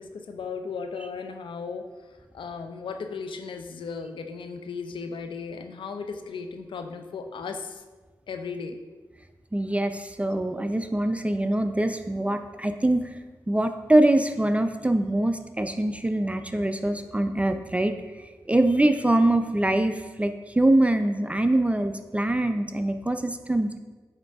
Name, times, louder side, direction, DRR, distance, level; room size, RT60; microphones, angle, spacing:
voice 1, 0.0-1.9 2.3-7.8 8.3-8.8, left 5 dB, 75° left, 6 dB, 0.5 m, -36 dB
voice 2, 9.5-13.0 13.5-17.9 18.5-23.8, right 1 dB, 15° right, 8 dB, 0.5 m, -23 dB
8.8 x 3.5 x 3.5 m, 1.3 s
supercardioid pair, 40°, 8 cm